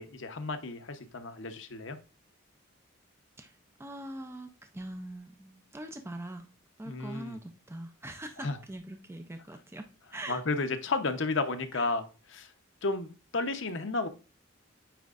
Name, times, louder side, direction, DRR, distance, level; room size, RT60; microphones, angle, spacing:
voice 1, 0.0-2.0 6.8-7.4 8.4-8.6 10.3-12.0 12.3-12.5 12.8-14.1, left 3 dB, 60° left, 8 dB, 0.8 m, -32 dB
voice 2, 3.4-6.5 6.8-10.4 11.7-11.9, right 1 dB, 10° right, 6 dB, 0.4 m, -43 dB
9.2 x 4.4 x 2.4 m, 0.33 s
head